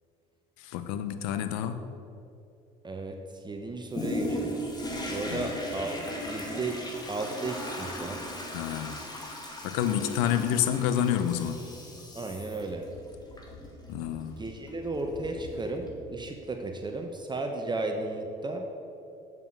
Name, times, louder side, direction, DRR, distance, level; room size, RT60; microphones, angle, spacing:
voice 1, 0.6-1.8 5.3-5.5 8.5-9.0 9.6-11.6 13.9-14.4, left 10 dB, 80° left, 10 dB, 0.8 m, -28 dB
voice 2, 2.8-4.6 5.1-6.0 6.2-6.8 7.1-8.3 12.1-12.9 14.4-18.7, right 2 dB, 25° right, 3 dB, 1.2 m, -34 dB
Toilet flush, 3.9-16.3 16.9-17.0, left 1 dB, 20° left, 2.2 m, -38 dB
7.8 x 7.4 x 7.7 m, 2.7 s
hypercardioid pair, 70°, 19 cm